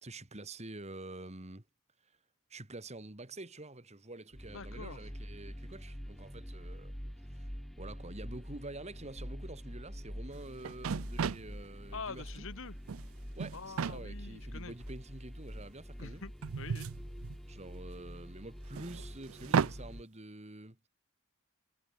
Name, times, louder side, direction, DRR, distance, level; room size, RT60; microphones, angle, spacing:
voice 1, 0.0-1.6 2.5-7.0 7.3-7.5 7.8-12.4 13.4-16.2 17.5-20.8, right 2 dB, 30° right, 2.1 m, -47 dB
sound 1, 4.3-20.0, equal, ahead, 0.4 m, -46 dB
voice 2, 4.5-5.0 11.9-12.8 13.5-14.8 16.0-16.9, left 4 dB, 65° left, 1.5 m, -45 dB
sound 2, 10.3-10.4 10.6-11.5 12.6-13.1 13.4-14.0 14.9-15.0 16.4-17.7 18.7-19.8, right 6 dB, 70° right, 0.5 m, -34 dB
head